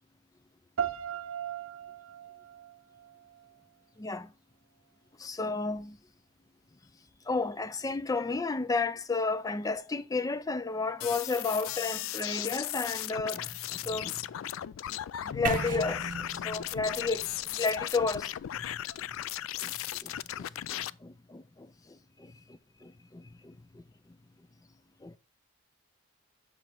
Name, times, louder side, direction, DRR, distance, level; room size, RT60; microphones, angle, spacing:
sound 1, 0.8-3.8, right 8 dB, 90° right, 0.6 m, -38 dB
voice 1, 4.0-4.3 5.2-6.0 7.3-14.5 15.2-18.3 19.6-19.7 20.0-22.9 23.7-23.8 25.0-25.2, left 3 dB, 15° left, 0.4 m, -32 dB
sound 2, 11.0-20.9, left 12 dB, 90° left, 0.3 m, -36 dB
sound 3, 15.4-19.4, right 5 dB, 40° right, 0.5 m, -38 dB
7.3 x 5.1 x 4.4 m
head